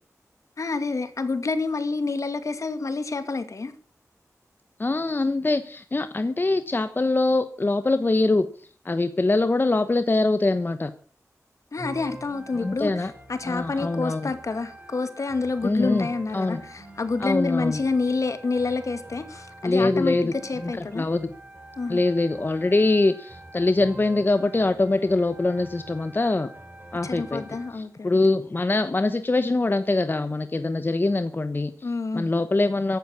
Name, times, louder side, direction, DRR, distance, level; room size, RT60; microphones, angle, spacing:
voice 1, 0.6-3.7 11.7-21.1 21.8-22.0 27.0-28.2 31.8-32.3, left 3 dB, 65° left, 10 dB, 2.3 m, -28 dB
voice 2, 4.8-8.5 8.8-10.9 12.6-13.1 13.4-14.3 15.6-16.1 16.3-16.6 17.2-17.8 19.6-21.3 21.9-26.5 26.9-27.4 27.7-31.9 32.1-33.0, left 2 dB, 35° left, 10 dB, 1.0 m, -23 dB
sound 1, 11.8-27.8, right 1 dB, 35° right, 6.8 m, -44 dB
14.5 x 11.5 x 7.1 m, 0.43 s
wide cardioid pair, 85°, 6 cm